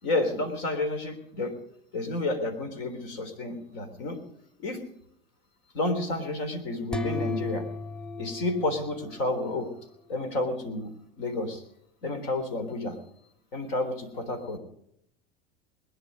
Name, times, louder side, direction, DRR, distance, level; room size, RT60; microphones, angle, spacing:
voice 1, 0.0-1.5 1.9-4.2 4.6-4.8 5.7-7.7 8.2-9.7 10.1-10.9 11.2-11.6 12.0-13.0 13.5-14.6, left 2 dB, 70° left, 8 dB, 3.7 m, -30 dB
sound 1, 6.9-9.7, left 2 dB, 5° left, 0.6 m, -35 dB
21.5 x 10.0 x 5.2 m, 0.73 s
hypercardioid pair, 85°, 29 cm